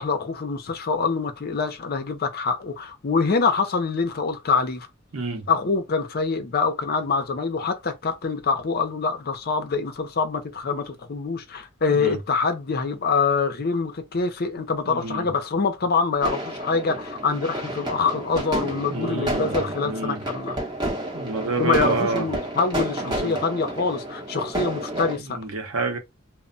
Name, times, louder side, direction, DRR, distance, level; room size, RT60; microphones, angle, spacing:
voice 1, 0.0-4.9 5.5-20.6 21.6-25.4, left 4 dB, 50° left, 0.5 m, -25 dB
voice 2, 5.1-5.5 11.9-12.2 14.8-15.3 18.9-20.2 21.1-22.3 23.0-23.3 25.2-26.0, right 3 dB, 80° right, 0.8 m, -29 dB
sound 1, 16.2-25.2, right 1 dB, 20° right, 0.9 m, -30 dB
2.1 x 2.0 x 3.7 m
head